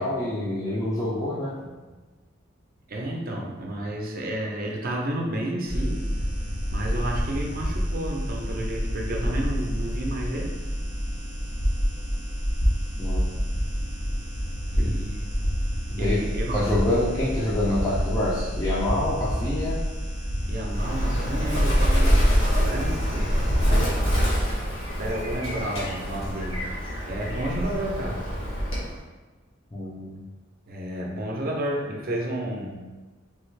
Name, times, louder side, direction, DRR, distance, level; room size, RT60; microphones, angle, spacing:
voice 1, 0.0-1.6 13.0-13.3 14.8-15.0 15.9-16.3 16.5-19.8 29.7-30.2, left 1 dB, 15° left, -8 dB, 0.5 m, -27 dB
voice 2, 2.9-6.1 6.7-10.5 14.7-15.5 16.0-16.6 20.5-23.3 25.0-26.6 27.1-28.2 30.7-32.8, right 1 dB, 45° right, 0 dB, 0.6 m, -31 dB
sound 1, 5.7-23.8, equal, 50° left, 0.9 m, -28 dB
Bird, 20.7-29.0, equal, 70° left, 1.1 m, -25 dB
3.3 x 2.4 x 3.1 m, 1.3 s
head